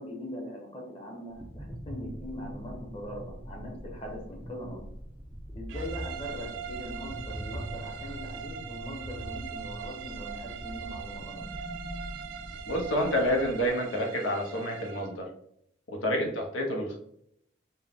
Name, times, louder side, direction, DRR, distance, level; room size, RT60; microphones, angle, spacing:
voice 1, 0.0-4.9 5.5-11.4 16.1-16.3, equal, 30° left, 0 dB, 0.9 m, -41 dB
sound 1, 1.3-13.7, equal, 5° right, 0.3 m, -42 dB
sound 2, 5.7-15.2, right 8 dB, 80° right, 0.5 m, -41 dB
voice 2, 12.7-15.3 15.9-16.9, equal, 90° left, 0 dB, 0.9 m, -28 dB
4.3 x 2.2 x 3.6 m, 0.73 s
head